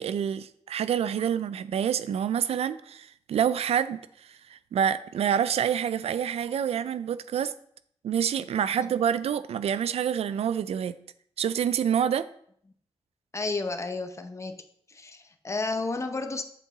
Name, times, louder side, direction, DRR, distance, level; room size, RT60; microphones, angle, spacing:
voice 1, 0.0-4.0 4.3-7.5 8.0-10.9 11.4-12.3, right 8 dB, 80° right, 15 dB, 0.4 m, -27 dB
voice 2, 13.3-14.6 14.9-16.4, left 3 dB, 30° left, 8 dB, 0.7 m, -32 dB
7.7 x 5.3 x 3.9 m, 0.66 s
wide cardioid pair, 100°, 10 cm